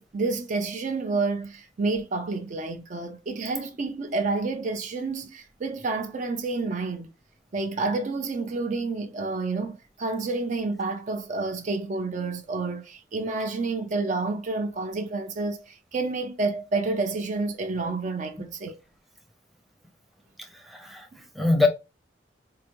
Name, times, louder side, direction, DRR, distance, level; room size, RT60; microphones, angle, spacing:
voice 1, 0.0-7.1 7.5-18.8, right 3 dB, 45° right, 0.4 m, -29 dB
voice 2, 20.4-21.7, left 3 dB, ahead, 0.6 m, -25 dB
4.5 x 2.5 x 3.0 m
head